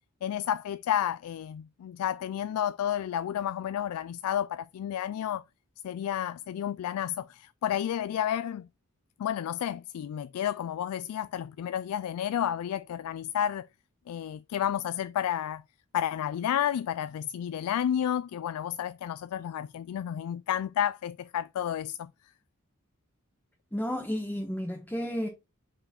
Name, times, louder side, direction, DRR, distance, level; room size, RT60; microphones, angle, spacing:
voice 1, 0.2-5.4 5.8-8.7 9.2-13.7 14.1-15.6 15.9-22.1, left 10 dB, 85° left, 0.3 m, -31 dB
voice 2, 23.7-25.3, equal, 10° left, 1.1 m, -32 dB
5.4 x 4.8 x 4.2 m
head